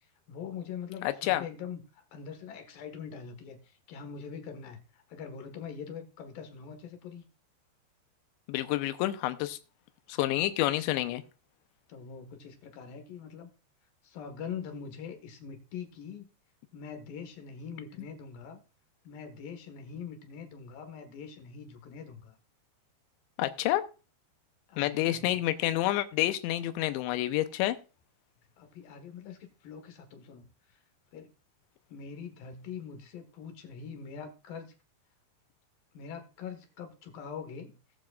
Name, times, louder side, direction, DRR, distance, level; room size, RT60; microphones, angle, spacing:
voice 1, 0.0-7.2 11.9-13.5 14.0-16.3 16.7-18.6 19.0-22.4 24.7-25.4 28.6-30.8 31.1-31.3 31.9-34.7 35.9-37.8, left 6 dB, 60° left, 7 dB, 2.8 m, -43 dB
voice 2, 8.5-9.6 10.1-11.2 23.4-23.8 24.8-27.8, left 15 dB, 85° left, 11 dB, 3.0 m, -28 dB
19.5 x 7.4 x 2.4 m, 0.32 s
omnidirectional pair, 5.2 m